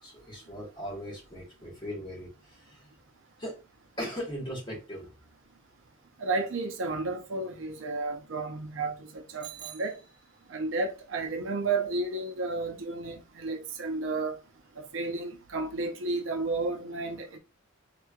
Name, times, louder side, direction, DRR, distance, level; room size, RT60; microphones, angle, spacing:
voice 1, 0.0-2.9 3.4-3.6 4.0-5.1, equal, 25° left, 1.6 m, -39 dB
voice 2, 6.2-10.0 10.5-14.4 14.8-17.4, right 3 dB, 70° right, 0.6 m, -32 dB
Bicycle bell, 9.4-10.7, right 9 dB, 25° right, 0.4 m, -47 dB
3.3 x 3.0 x 2.3 m
head